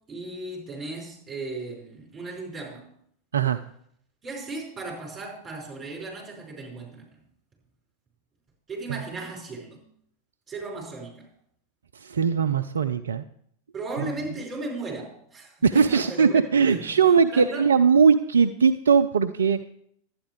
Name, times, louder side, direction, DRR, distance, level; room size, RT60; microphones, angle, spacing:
voice 1, 0.1-2.9 4.2-7.0 8.7-9.8 10.5-11.3 13.7-16.9 17.3-17.7, right 2 dB, 20° right, -2 dB, 4.9 m, -36 dB
voice 2, 11.9-13.2 14.0-14.1 15.6-19.6, right 6 dB, 70° right, 9 dB, 0.4 m, -20 dB
11.5 x 9.2 x 4.7 m, 0.68 s
figure-of-eight pair, 90°, 0 cm